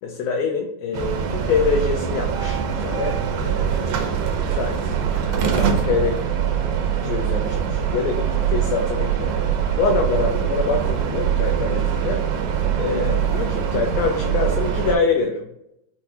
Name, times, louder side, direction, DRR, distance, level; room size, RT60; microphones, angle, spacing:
voice 1, 0.0-6.2 7.0-9.3 9.8-12.2 12.8-15.5, left 4 dB, 80° left, 2 dB, 2.0 m, -25 dB
sound 1, 0.9-15.0, right 8 dB, 80° right, 1.9 m, -23 dB
5.9 x 2.2 x 2.7 m, 0.81 s
omnidirectional pair, 3.7 m